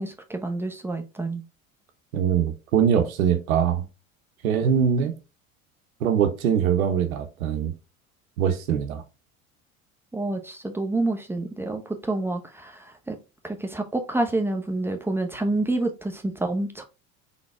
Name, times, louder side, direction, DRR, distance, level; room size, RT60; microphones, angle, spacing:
voice 1, 0.0-1.4 4.7-5.1 10.1-13.2 13.4-16.8, right 2 dB, 5° right, 0.9 m, -28 dB
voice 2, 2.1-3.8 4.4-5.1 6.0-7.7 8.4-9.0, right 8 dB, 75° right, 0.8 m, -22 dB
3.9 x 3.6 x 3.5 m
hypercardioid pair, 75°, 42 cm